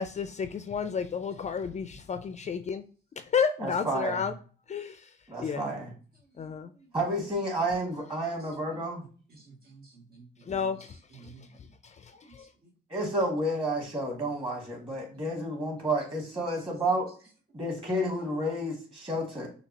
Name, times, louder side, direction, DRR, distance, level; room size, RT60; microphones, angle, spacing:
voice 1, 0.0-2.8 3.3-4.3 4.7-5.1 5.4-5.6 6.4-6.7 10.4-12.5, left 6 dB, 35° left, 0.4 m, -32 dB
voice 2, 3.6-4.3 5.3-5.9 6.9-9.0 12.9-17.1 17.5-19.5, right 1 dB, 25° right, 2.3 m, -30 dB
voice 3, 6.3-6.9 9.3-11.7 12.2-12.8 15.2-15.4, right 4 dB, 50° right, 0.9 m, -54 dB
6.4 x 2.7 x 2.8 m
cardioid pair, 90°, 20 cm